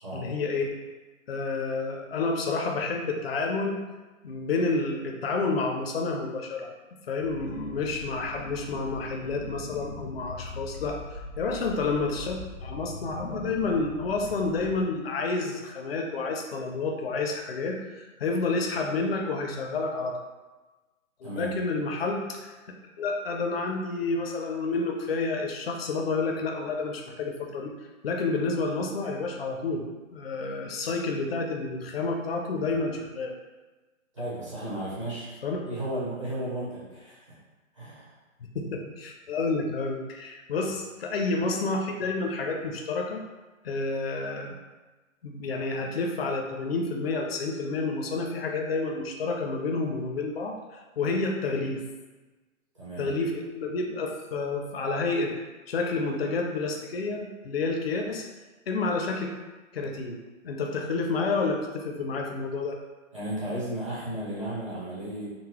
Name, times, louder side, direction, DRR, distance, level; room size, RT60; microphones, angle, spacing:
voice 1, 0.1-0.7 1.3-3.8 4.2-20.2 21.2-22.5 23.0-27.7 28.0-29.8 30.1-33.3 35.4-35.6 38.5-43.2 43.6-44.5 45.2-51.8 53.0-55.3 55.7-58.2 58.7-59.3 59.7-60.2 60.4-62.8, left 3 dB, 50° left, 2 dB, 0.4 m, -29 dB
sound 1, 7.2-14.8, left 3 dB, 85° left, 0.7 m, -41 dB
voice 2, 34.1-35.3 35.7-37.4 37.7-38.1 40.6-40.7 52.7-53.1 63.1-65.4, right 1 dB, 25° right, -10 dB, 0.7 m, -34 dB
3.8 x 2.0 x 2.9 m, 1.2 s
hypercardioid pair, 160°, 41 cm